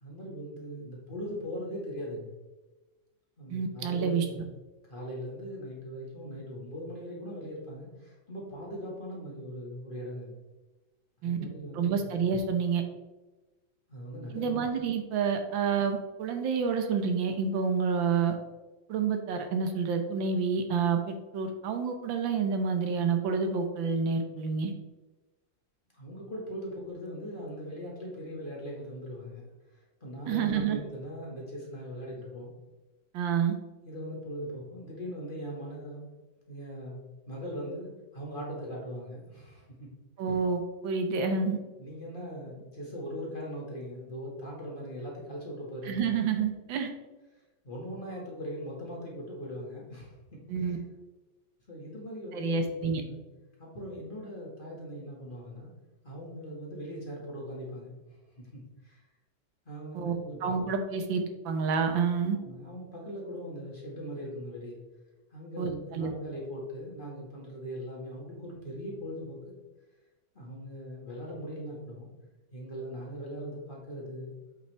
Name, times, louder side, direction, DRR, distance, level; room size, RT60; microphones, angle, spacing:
voice 1, 0.0-2.3 3.4-4.4 4.9-10.3 11.2-12.1 13.9-14.6 25.9-29.4 29.7-32.5 33.8-36.0 36.5-37.0 37.3-39.9 41.8-46.2 47.6-50.7 51.7-53.2 53.6-55.7 56.0-57.9 58.4-59.0 59.7-60.6 62.4-64.8 65.3-69.5 70.4-72.1 72.5-74.3, equal, 25° left, -4 dB, 1.9 m, -40 dB
voice 2, 3.5-4.2 11.2-11.4 11.7-12.8 14.3-18.4 18.9-24.7 30.3-30.8 33.1-33.5 40.2-41.6 45.8-46.9 50.5-50.8 52.3-53.0 59.9-60.1 60.4-62.4 65.6-66.1, right 5 dB, 80° right, 6 dB, 1.6 m, -28 dB
8.5 x 5.5 x 3.4 m, 1.1 s
omnidirectional pair, 2.1 m